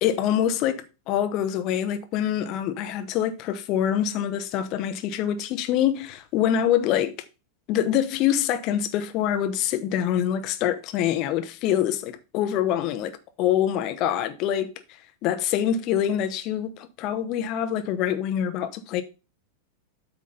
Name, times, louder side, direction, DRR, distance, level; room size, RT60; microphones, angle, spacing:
voice 1, 0.0-7.1 7.7-14.7 15.2-19.0, left 10 dB, 40° left, 1.0 m, -25 dB
8.4 x 3.7 x 5.5 m
figure-of-eight pair, 90°, 0 cm